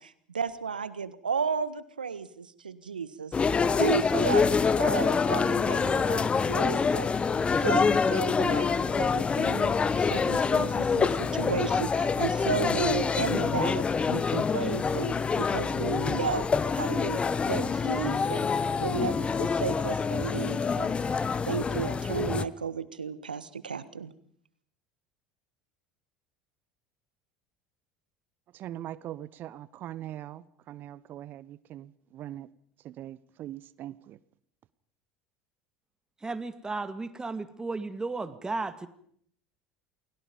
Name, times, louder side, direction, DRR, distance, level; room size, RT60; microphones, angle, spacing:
voice 1, 0.0-18.5 18.8-24.1, right 6 dB, 85° right, 1.5 m, -34 dB
sound 1, 3.3-22.4, left 5 dB, 25° left, 1.1 m, -26 dB
voice 2, 28.5-32.5 32.8-34.2, right 12 dB, 45° right, 1.0 m, -42 dB
voice 3, 36.2-38.9, right 3 dB, 15° right, 2.0 m, -34 dB
29.5 x 21.0 x 5.3 m
figure-of-eight pair, 70°, 5 cm